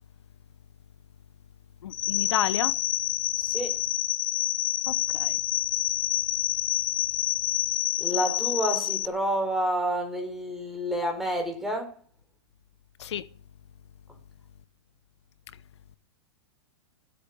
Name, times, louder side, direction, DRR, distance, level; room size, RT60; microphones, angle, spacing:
voice 1, 1.8-2.7 4.9-5.4 13.0-13.3, left 10 dB, 80° left, 1.0 m, -31 dB
sound 1, 1.9-9.1, left 15 dB, 50° left, 0.8 m, -27 dB
voice 2, 3.4-3.8 8.0-12.0, right 1 dB, ahead, 4.0 m, -29 dB
16.5 x 8.2 x 9.1 m
hypercardioid pair, 150°, 14 cm